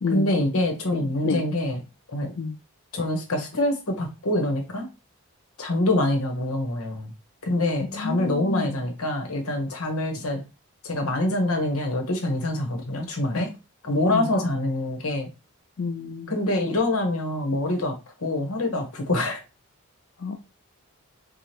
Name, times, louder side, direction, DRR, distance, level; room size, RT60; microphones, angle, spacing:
voice 1, 0.1-1.8 2.1-2.3 2.9-4.9 5.6-7.1 7.4-10.4 10.8-13.5 13.8-15.3 16.3-17.9 18.2-19.4, left 1 dB, 85° left, 1.1 m, -25 dB
voice 2, 0.9-1.4 2.4-2.5 8.0-8.7 13.3-13.5 14.1-14.2 15.8-16.3 20.2-20.4, left 4 dB, 60° left, 0.4 m, -29 dB
4.8 x 2.3 x 2.9 m
head